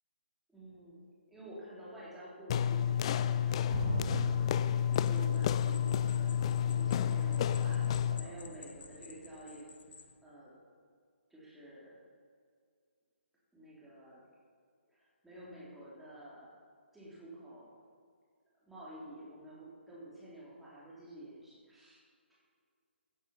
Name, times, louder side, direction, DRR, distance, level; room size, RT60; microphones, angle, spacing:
voice 1, 0.5-5.7 6.0-6.4 6.7-9.7 10.2-10.5 11.3-12.0 13.5-14.2 14.9-16.5 16.9-17.7 18.6-22.0, right 1 dB, 5° right, -9 dB, 3.8 m, -51 dB
sound 1, 2.5-8.3, left 9 dB, 30° left, 0.4 m, -30 dB
sound 2, 3.7-9.5 9.9-10.0, right 2 dB, 40° right, 3.3 m, -43 dB
sound 3, 4.9-10.2, left 5 dB, 55° left, 1.1 m, -55 dB
15.5 x 9.0 x 5.7 m, 2.2 s
figure-of-eight pair, 140°, 7 cm